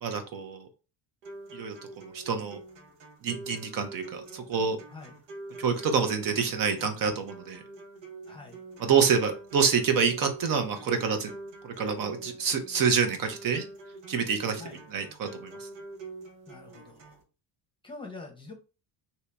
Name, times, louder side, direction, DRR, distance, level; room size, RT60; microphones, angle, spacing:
voice 1, 0.0-0.7 1.5-1.8 2.0-2.6 3.2-4.8 5.6-7.6 8.8-11.3 11.6-13.7 14.1-14.6 14.9-15.7, right 6 dB, 50° right, 7 dB, 0.7 m, -27 dB
sound 1, 1.2-17.2, right 3 dB, 85° right, 1.1 m, -46 dB
voice 2, 8.3-8.6 14.6-14.8 16.5-17.2 17.8-18.5, left 3 dB, 10° left, 1 dB, 0.8 m, -45 dB
2.8 x 2.7 x 3.3 m, 0.32 s
cardioid pair, 120°, 43 cm